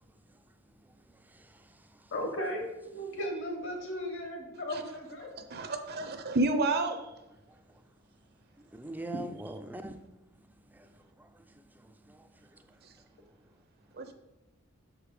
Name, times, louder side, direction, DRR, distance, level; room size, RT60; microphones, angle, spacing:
voice 1, 0.8-2.1 3.1-3.2 7.5-7.8 8.6-10.0 10.6-13.0, right 1 dB, 10° right, 0.4 m, -46 dB
voice 2, 2.1-5.3, equal, 60° left, 1.5 m, -36 dB
voice 3, 5.5-7.1 12.8-12.9 13.9-14.1, right 2 dB, 50° right, 0.7 m, -30 dB
6.2 x 5.0 x 5.1 m
head